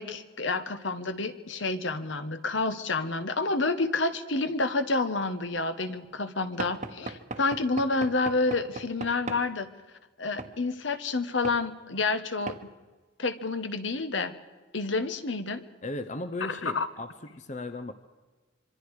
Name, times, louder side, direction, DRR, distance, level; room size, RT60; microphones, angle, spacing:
voice 1, 0.0-9.7 10.2-12.6 13.2-14.4 14.7-15.6 16.4-16.9, left 3 dB, 65° left, 10 dB, 1.3 m, -29 dB
Knock / Wood, 6.6-9.5 10.4-10.6 11.4-11.6 12.5-12.6, right 3 dB, 35° right, 1.2 m, -38 dB
voice 2, 15.8-17.9, left 2 dB, 35° left, 9 dB, 0.9 m, -36 dB
26.0 x 24.5 x 4.9 m, 1.3 s
head